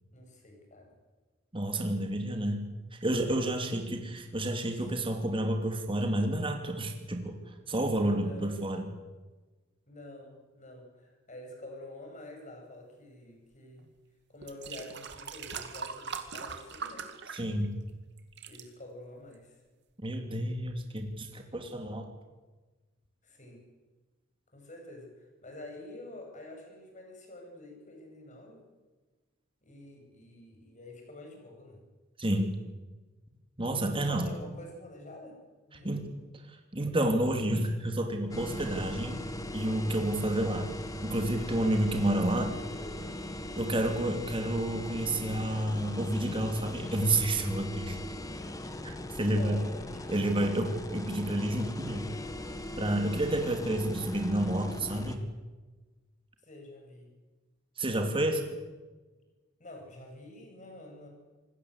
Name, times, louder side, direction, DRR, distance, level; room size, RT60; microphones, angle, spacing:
voice 1, 0.1-1.0 3.5-4.0 4.7-4.9 8.2-8.6 9.9-13.9 14.3-17.1 18.5-19.6 23.2-23.6 24.5-28.7 29.6-31.8 34.0-35.4 35.7-36.0 41.5-41.8 42.4-43.2 49.3-50.1 56.4-57.1 59.6-61.1, left 1 dB, 40° left, 2 dB, 8.0 m, -48 dB
voice 2, 1.5-2.6 2.9-7.4 7.7-8.9 17.3-17.7 20.0-22.1 32.2-32.5 33.6-34.3 35.8-36.1 36.5-39.2 39.5-40.7 41.0-42.5 43.6-48.0 48.8-49.6 50.1-52.1 52.8-55.2 57.8-58.4, right 1 dB, 25° right, 4 dB, 2.8 m, -30 dB
sound 1, 13.8-13.9 14.4-17.9 18.2-18.6 19.3-19.4, right 6 dB, 60° right, 2.5 m, -41 dB
sound 2, 38.3-55.2, left 1 dB, 20° left, 1.9 m, -40 dB
26.5 x 20.0 x 8.1 m, 1.2 s
head